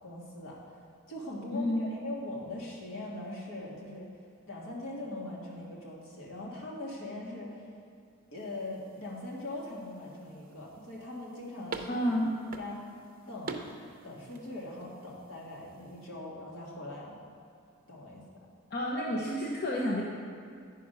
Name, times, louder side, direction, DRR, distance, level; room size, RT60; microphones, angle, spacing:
voice 1, 0.0-0.8 1.1-4.1 4.5-7.7 8.3-12.0 12.6-12.8 13.3-13.7 14.0-17.2 17.9-18.2, left 1 dB, 75° left, -4 dB, 1.8 m, -41 dB
sound 1, 8.4-16.1, right 3 dB, 45° right, 0.6 m, -47 dB
voice 2, 11.9-12.3 18.7-20.0, equal, 50° left, -3 dB, 0.8 m, -30 dB
9.8 x 5.0 x 5.5 m, 2.4 s
head